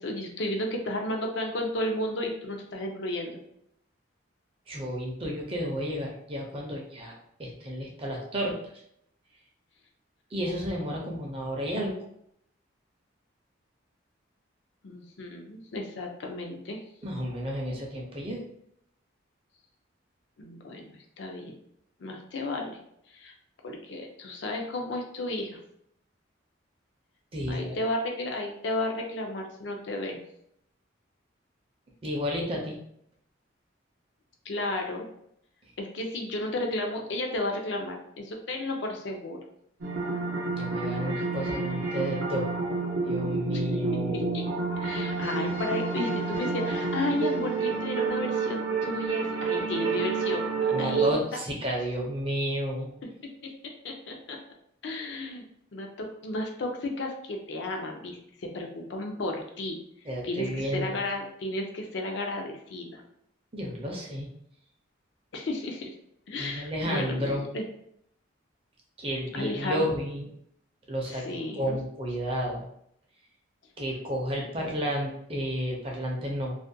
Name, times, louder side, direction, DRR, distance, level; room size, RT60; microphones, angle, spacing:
voice 1, 0.0-3.4 14.8-16.8 20.4-21.5 22.0-22.8 23.1-23.3 23.6-25.6 27.5-30.2 34.5-35.1 35.8-39.4 43.5-44.4 44.8-51.1 53.8-54.4 54.8-55.4 55.7-59.8 60.2-63.0 65.3-65.9 66.3-67.6 69.3-69.9 71.1-71.8, left 1 dB, 65° left, 1 dB, 0.4 m, -33 dB
voice 2, 4.7-7.1 7.4-8.6 10.3-11.9 17.0-18.4 27.3-27.8 32.0-32.8 40.6-42.5 43.1-44.4 50.7-53.0 60.1-60.9 63.5-64.3 66.4-67.4 69.0-70.3 70.9-71.2 71.5-72.6 73.8-76.5, equal, 30° right, -1 dB, 0.5 m, -31 dB
sound 1, 39.8-51.1, right 4 dB, 80° right, 0.6 m, -29 dB
2.4 x 2.1 x 2.6 m, 0.73 s
head